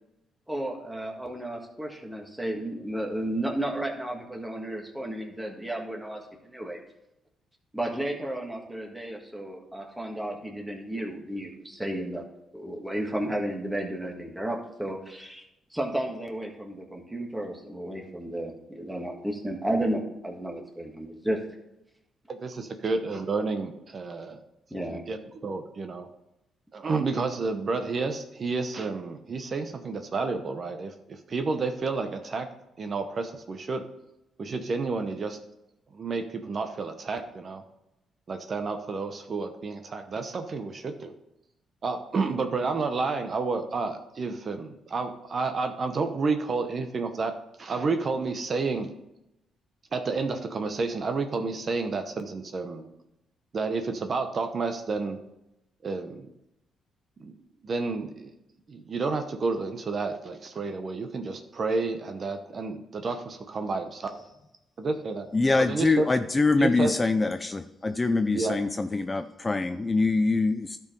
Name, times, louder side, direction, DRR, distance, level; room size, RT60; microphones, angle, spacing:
voice 1, 0.5-6.8 7.7-12.2 12.5-15.4 15.7-21.4 24.7-25.0, right 1 dB, 5° right, 2 dB, 1.7 m, -33 dB
voice 2, 22.3-24.4 24.9-26.1 26.7-32.5 32.8-33.8 34.4-35.4 35.9-37.6 38.3-41.1 41.8-47.3 47.6-48.9 49.9-52.9 53.5-55.2 55.8-56.3 57.2-57.3 57.6-58.3 58.7-64.2 64.8-65.3 65.6-66.1 66.5-66.9 68.3-68.6, right 4 dB, 45° right, 6 dB, 0.8 m, -30 dB
voice 3, 65.3-70.8, left 3 dB, 20° left, 9 dB, 0.4 m, -24 dB
12.0 x 4.6 x 5.3 m, 0.89 s
cardioid pair, 90°, 0 cm